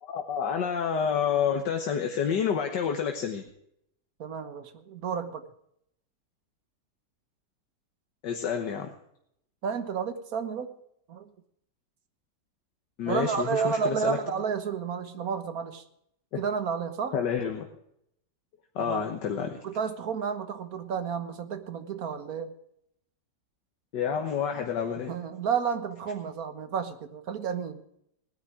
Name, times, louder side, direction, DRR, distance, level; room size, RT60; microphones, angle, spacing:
voice 1, 0.0-3.4 8.2-8.9 13.0-14.2 16.3-16.4 17.1-17.7 18.8-19.6 23.9-25.2, left 7 dB, 80° left, 4 dB, 1.8 m, -29 dB
voice 2, 4.2-5.4 9.6-10.7 11.1-11.3 13.0-15.8 16.4-17.2 18.8-19.0 19.6-22.5 25.1-27.8, right 6 dB, 60° right, 9 dB, 1.6 m, -31 dB
19.0 x 10.5 x 4.8 m, 0.73 s
omnidirectional pair, 1.9 m